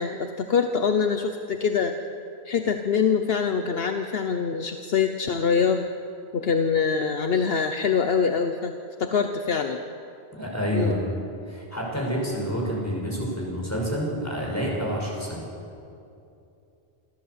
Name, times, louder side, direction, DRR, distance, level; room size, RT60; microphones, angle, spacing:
voice 1, 0.0-1.9 2.4-5.9 6.3-8.7 9.0-9.8 10.7-11.0, left 6 dB, 65° left, 6 dB, 1.1 m, -24 dB
voice 2, 10.3-11.0 11.5-15.4, equal, 15° left, -3 dB, 6.0 m, -28 dB
26.5 x 14.0 x 8.1 m, 2.7 s
omnidirectional pair, 1.1 m